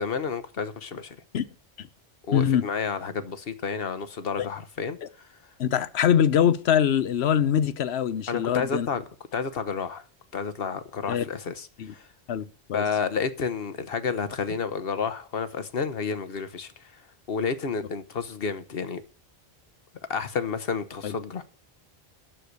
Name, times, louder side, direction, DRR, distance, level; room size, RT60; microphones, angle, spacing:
voice 1, 0.0-1.2 2.3-5.3 8.3-9.0 9.3-10.0 10.3-12.1 12.7-17.0 17.3-19.0 20.1-21.4, left 5 dB, 65° left, 1.2 m, -30 dB
voice 2, 2.3-2.6 4.4-4.5 5.6-8.9 11.1-11.2 11.8-11.9 12.3-12.8 21.0-21.1, left 9 dB, 80° left, 1.0 m, -23 dB
11.0 x 6.7 x 8.0 m
omnidirectional pair, 1.1 m